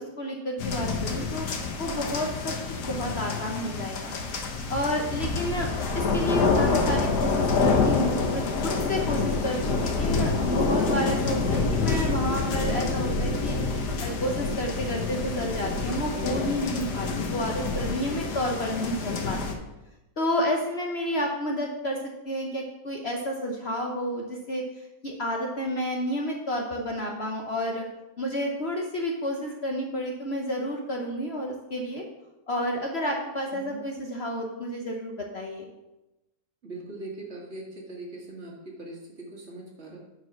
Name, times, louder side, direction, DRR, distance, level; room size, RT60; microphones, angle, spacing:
voice 1, 0.0-1.5 1.8-4.1 4.7-19.6 20.2-22.0 22.2-24.6 25.0-27.8 28.2-32.0 32.5-35.6, equal, 45° left, 1 dB, 1.1 m, -30 dB
sound 1, 0.6-19.5, left 4 dB, 85° left, 1.7 m, -27 dB
voice 2, 33.5-33.8 36.6-40.0, right 2 dB, 40° right, -3 dB, 2.3 m, -41 dB
9.4 x 4.7 x 6.0 m, 1.0 s
omnidirectional pair, 1.7 m